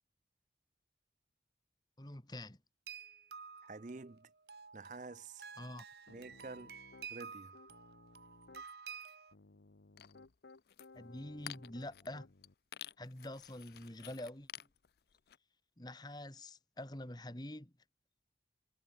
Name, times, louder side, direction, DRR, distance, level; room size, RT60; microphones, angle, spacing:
voice 1, 2.0-2.6 5.6-5.8 10.9-12.3 13.0-14.5 15.8-17.7, left 1 dB, 25° left, 1.8 m, -46 dB
sound 1, 2.9-9.3, right 6 dB, 65° right, 1.6 m, -51 dB
voice 2, 3.6-4.3 4.7-5.5 6.1-6.8 7.1-7.6, right 3 dB, 45° right, 0.6 m, -49 dB
Piano, 6.1-7.1 7.5-8.7 9.3-12.5, left 3 dB, 90° left, 1.0 m, -59 dB
sound 2, 10.0-10.2 10.5-10.9 11.3-12.1 12.4-12.5 12.7-15.4, left 11 dB, 60° left, 0.4 m, -51 dB
head